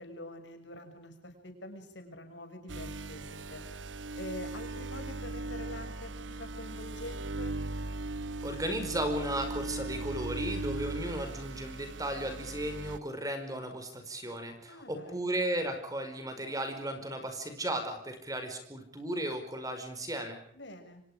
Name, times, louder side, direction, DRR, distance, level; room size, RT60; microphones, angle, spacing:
voice 1, 0.0-3.6 4.1-7.6 14.7-15.3 20.5-21.0, left 1 dB, 75° left, 6 dB, 6.1 m, -45 dB
sound 1, 2.7-13.0, right 2 dB, 80° right, 1.0 m, -38 dB
voice 2, 8.4-20.4, right 1 dB, 20° right, 7 dB, 5.1 m, -35 dB
30.0 x 25.0 x 5.1 m, 0.68 s
head